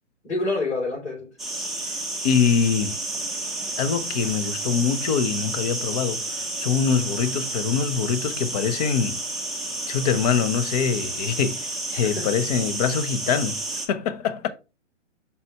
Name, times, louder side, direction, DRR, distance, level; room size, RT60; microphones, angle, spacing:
voice 1, 0.2-1.3 12.0-12.3, left 2 dB, 65° left, 3.9 m, -27 dB
sound 1, 1.4-13.9, right 2 dB, ahead, 0.7 m, -31 dB
voice 2, 1.9-3.0 3.8-9.2 9.9-13.6 13.9-14.5, left 7 dB, 35° left, 0.6 m, -24 dB
5.6 x 4.1 x 4.4 m
hypercardioid pair, 135°, 36 cm